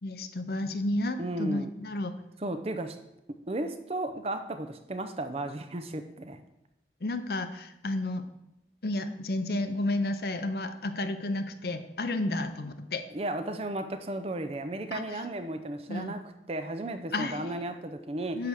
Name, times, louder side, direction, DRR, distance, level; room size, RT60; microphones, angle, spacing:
voice 1, 0.0-2.1 7.0-8.2 8.8-13.1 14.9-15.2 15.9-16.1 17.1-17.5 18.3-18.5, left 2 dB, 60° left, 9 dB, 0.7 m, -32 dB
voice 2, 1.2-1.7 2.4-3.0 3.3-6.4 13.1-16.2 16.5-18.4, right 1 dB, 35° right, 7 dB, 0.6 m, -34 dB
10.5 x 3.5 x 6.3 m, 0.88 s
head